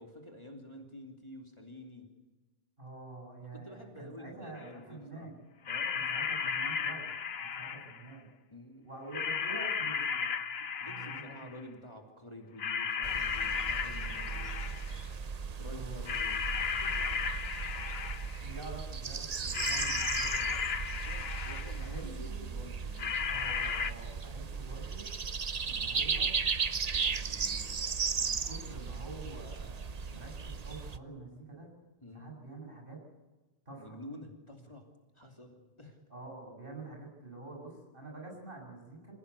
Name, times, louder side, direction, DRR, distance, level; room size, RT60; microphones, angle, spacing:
voice 1, 0.0-2.1 3.4-5.3 5.7-6.2 6.6-6.8 7.6-7.8 8.5-8.9 10.8-14.7 15.6-16.5 16.8-17.4 18.9-19.0 20.7-23.6 32.0-32.3 33.8-34.9 35.1-36.0, left 1 dB, 25° left, 2 dB, 2.9 m, -50 dB
voice 2, 2.8-5.4 5.9-8.3 8.8-10.3 10.9-11.6 15.7-16.1 18.4-20.6 21.8-22.5 23.3-25.1 25.6-26.3 26.9-27.8 28.1-31.7 32.1-33.0 33.7-34.0 36.1-39.1, right 2 dB, 55° right, 0 dB, 7.4 m, -47 dB
sound 1, 4.6-4.7 5.7-8.1 9.1-11.6 12.6-15.0 16.1-18.5 19.5-22.0 23.0-23.9, left 6 dB, 70° left, 1.2 m, -34 dB
sound 2, 13.0-31.0, right 5 dB, 40° right, 0.8 m, -36 dB
26.5 x 16.5 x 8.3 m, 1.2 s
omnidirectional pair, 1.1 m